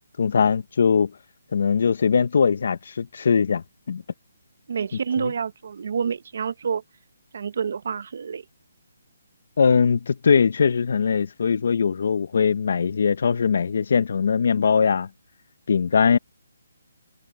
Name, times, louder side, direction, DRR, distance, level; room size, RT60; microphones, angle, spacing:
voice 1, 0.2-1.1 1.5-4.0 9.6-15.1 15.7-16.2, left 6 dB, 45° left, 0.7 m, -21 dB
voice 2, 4.7-6.8 7.3-8.4, right 6 dB, 45° right, 0.8 m, -28 dB
hypercardioid pair, 175°, 0 cm